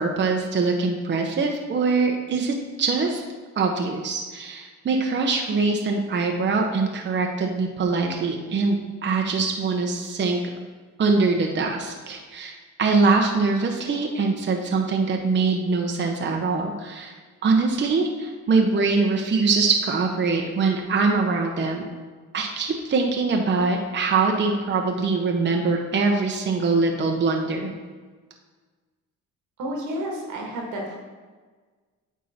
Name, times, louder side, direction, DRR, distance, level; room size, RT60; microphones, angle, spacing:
voice 1, 0.0-3.2 3.6-10.4 11.0-17.1 17.4-21.8 22.3-27.7, right 4 dB, 40° right, 2 dB, 0.8 m, -23 dB
voice 2, 29.6-31.0, right 1 dB, 90° right, 0 dB, 1.7 m, -31 dB
8.6 x 3.6 x 4.2 m, 1.4 s
cardioid pair, 90°, 30 cm